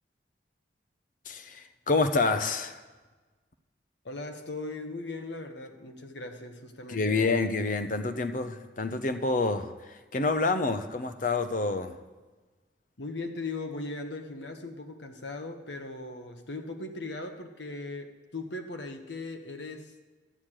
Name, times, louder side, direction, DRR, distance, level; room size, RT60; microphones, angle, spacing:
voice 1, 1.3-2.8 6.9-12.0, left 3 dB, 45° left, 9 dB, 0.8 m, -28 dB
voice 2, 4.0-7.4 13.0-19.9, left 2 dB, 75° left, 5 dB, 1.3 m, -38 dB
11.5 x 6.5 x 9.0 m, 1.3 s
head